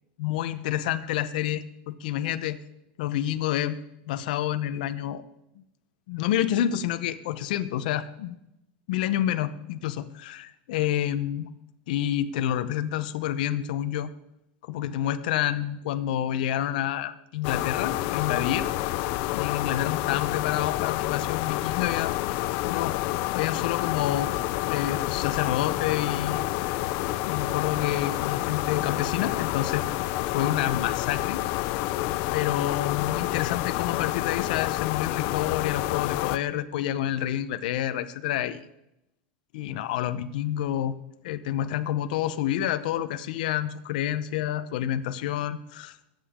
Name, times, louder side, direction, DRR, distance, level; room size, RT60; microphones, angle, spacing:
voice 1, 0.2-2.6 3.0-3.8 4.1-5.2 6.1-8.4 8.9-11.5 11.9-14.1 14.6-18.7 19.3-22.2 22.7-23.0 23.3-24.3 24.7-26.8 27.2-29.9 30.3-31.4 32.3-38.6 39.5-41.0 41.2-46.0, left 11 dB, 70° left, 10 dB, 0.8 m, -28 dB
sound 1, 17.4-36.4, left 17 dB, 45° left, 0.5 m, -28 dB
22.0 x 9.1 x 3.7 m, 0.85 s
supercardioid pair, 160°, 5 cm